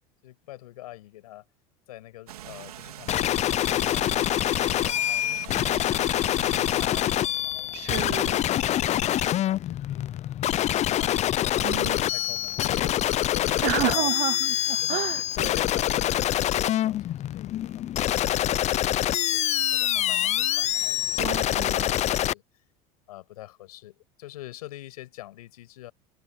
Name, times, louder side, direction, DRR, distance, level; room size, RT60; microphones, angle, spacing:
voice 1, 0.2-1.4 1.9-3.3 3.7-7.7 8.2-10.1 10.6-14.1 14.8-22.4 23.1-25.9, left 16 dB, 80° left, 7.1 m, -44 dB
sound 1, 2.3-7.3, right 12 dB, 90° right, 3.7 m, -42 dB
sound 2, 3.1-22.3, left 12 dB, 35° left, 0.6 m, -25 dB
voice 2, 7.7-8.5 11.6-12.0 13.6-15.2 21.2-21.9, right 23 dB, 60° right, 0.8 m, -30 dB
hypercardioid pair, 90°, 19 cm